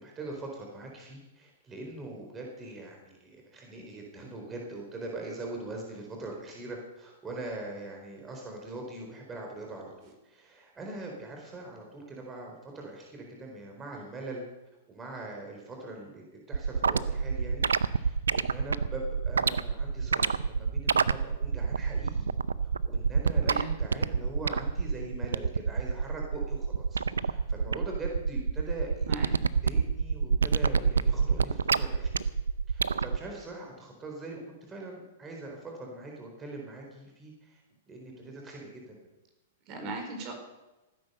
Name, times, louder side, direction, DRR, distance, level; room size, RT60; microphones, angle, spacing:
voice 1, 0.0-14.4 14.9-17.7 17.9-22.3 22.8-29.1 29.6-32.2 32.7-34.4 34.7-37.6 37.9-39.0, right 2 dB, 20° right, 0 dB, 4.1 m, -42 dB
sound 1, 16.5-33.2, right 5 dB, 85° right, 0.5 m, -27 dB
voice 2, 23.4-23.7 29.1-29.3 39.7-40.3, right 3 dB, 45° right, 3 dB, 4.4 m, -37 dB
17.0 x 10.0 x 6.8 m, 1.0 s
hypercardioid pair, 115°, 0 cm